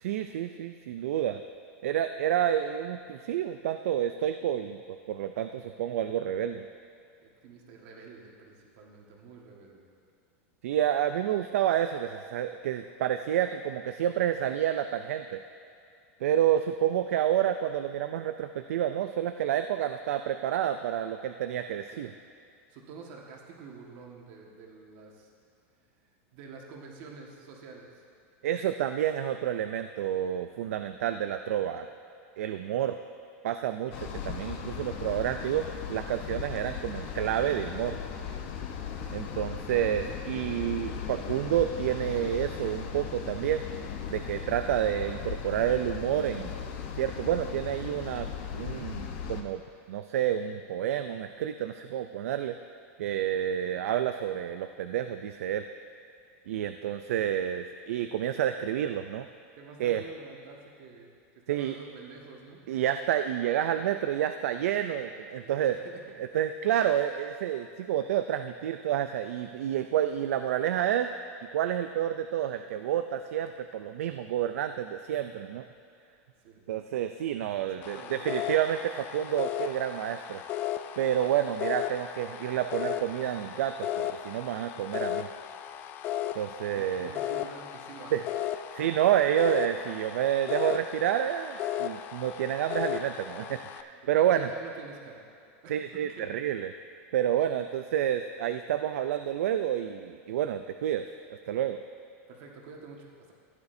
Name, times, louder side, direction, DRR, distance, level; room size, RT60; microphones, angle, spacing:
voice 1, 0.0-1.4 1.8-6.6 10.6-15.4 16.2-22.1 28.4-31.9 32.4-33.0 33.4-38.0 39.1-43.6 44.1-46.5 47.0-48.3 48.5-49.6 49.9-52.6 53.0-55.6 56.5-59.3 59.8-60.0 61.5-61.7 62.7-65.8 66.2-71.1 71.5-75.6 76.7-80.4 81.0-85.3 86.3-87.1 88.1-88.2 88.7-94.5 95.7-96.7 97.1-101.1 101.5-101.8, right 10 dB, 90° right, 8 dB, 0.4 m, -29 dB
voice 2, 7.2-9.9 21.9-22.1 22.7-25.3 26.0-28.1 59.5-62.6 65.4-66.1 76.4-76.7 77.6-78.2 86.7-88.3 88.8-88.9 94.0-95.2 95.6-96.3 102.3-103.3, right 4 dB, 50° right, 0 dB, 1.5 m, -48 dB
sound 1, 33.9-49.4, left 7 dB, 50° left, 0.9 m, -37 dB
sound 2, 77.8-93.8, left 11 dB, 25° left, 0.3 m, -36 dB
15.5 x 9.7 x 2.7 m, 2.5 s
supercardioid pair, 165°, 8 cm